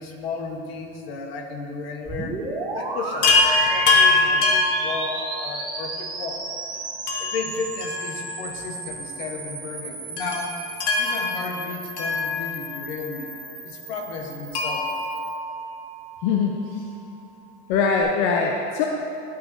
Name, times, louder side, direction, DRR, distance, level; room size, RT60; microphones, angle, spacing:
voice 1, 0.0-2.3 2.7-3.4 3.7-6.4 7.2-10.6 11.0-13.3 13.6-14.9, left 4 dB, 65° left, 3 dB, 1.2 m, -33 dB
sound 1, 2.0-15.4, right 3 dB, 15° right, 0.8 m, -34 dB
Chime, 3.2-5.7 7.1-8.6 8.9-9.0 10.2-12.9 14.5-16.1 17.7-17.8 18.0-18.1, left 3 dB, 85° left, 1.3 m, -23 dB
voice 2, 16.2-16.8 17.7-18.8, left 5 dB, 45° left, 1 dB, 0.6 m, -22 dB
12.0 x 5.8 x 2.7 m, 2.8 s
supercardioid pair, 155°, 33 cm